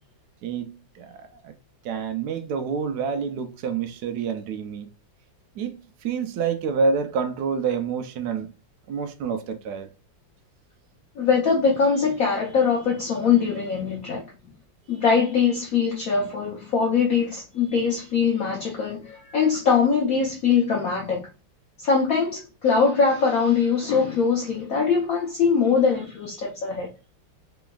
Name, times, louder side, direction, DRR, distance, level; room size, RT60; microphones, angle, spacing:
voice 1, 0.4-1.5 1.8-4.9 5.6-8.5 8.9-9.9, right 5 dB, 70° right, 1.0 m, -28 dB
voice 2, 11.2-14.2 14.9-21.3 21.8-26.9, left 5 dB, 60° left, 1.0 m, -22 dB
3.8 x 3.3 x 2.3 m
omnidirectional pair, 2.1 m